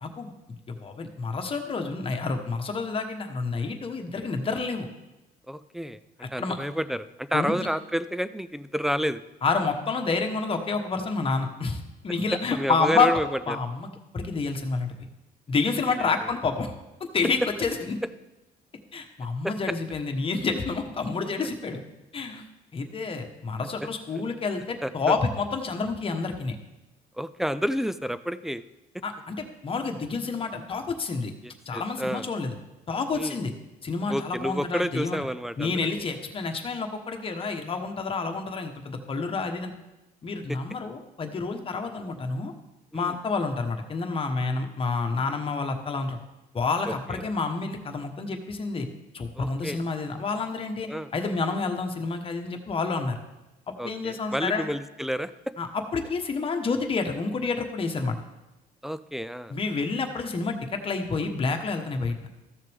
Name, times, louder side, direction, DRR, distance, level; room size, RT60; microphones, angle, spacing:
voice 1, 0.0-4.9 6.4-6.6 7.3-7.6 9.4-13.2 13.5-15.0 15.5-16.7 17.1-18.0 18.9-21.8 22.1-22.4 22.7-26.6 29.0-31.3 31.7-32.5 32.9-33.5 33.8-35.2 35.6-39.7 40.2-42.5 42.9-46.2 46.5-48.9 49.1-53.2 53.8-54.7 55.6-55.7 55.9-58.2 59.5-62.2, left 4 dB, 35° left, 5 dB, 1.2 m, -29 dB
voice 2, 5.5-9.2 12.5-13.6 16.0-16.1 19.4-19.5 24.1-24.2 24.8-25.2 27.2-28.6 31.4-32.2 33.1-33.4 34.1-35.9 42.9-43.2 46.8-47.2 49.4-49.8 50.9-51.1 53.8-55.3 58.8-59.5, equal, ahead, 14 dB, 0.4 m, -30 dB
14.0 x 6.6 x 3.5 m, 0.99 s
cardioid pair, 110°, 17 cm